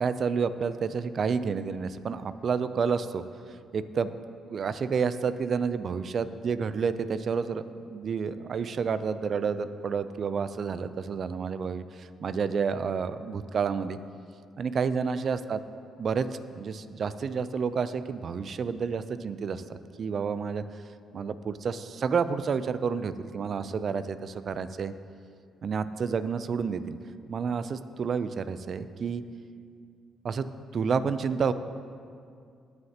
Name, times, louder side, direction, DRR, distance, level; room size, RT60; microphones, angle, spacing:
voice 1, 0.0-3.2 3.7-4.1 4.5-14.0 14.6-15.6 16.0-20.6 21.1-24.9 25.6-27.0 27.3-29.2 30.2-30.5 30.7-31.5, right 6 dB, 50° right, 13 dB, 0.4 m, -30 dB
18.0 x 6.5 x 2.9 m, 2.3 s
cardioid pair, 90°, 0 cm